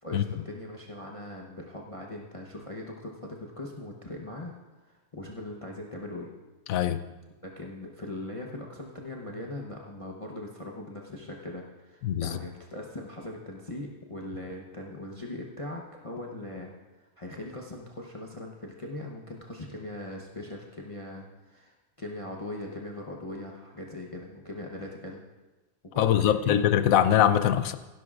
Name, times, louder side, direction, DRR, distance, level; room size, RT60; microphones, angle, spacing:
voice 1, 0.0-4.5 4.8-6.3 7.4-25.2 25.9-26.6, left 1 dB, 30° left, -1 dB, 0.9 m, -40 dB
voice 2, 6.7-7.0 12.0-12.4 26.0-27.7, left 10 dB, 80° left, 12 dB, 1.0 m, -22 dB
16.5 x 11.0 x 2.5 m, 1.1 s
omnidirectional pair, 1.4 m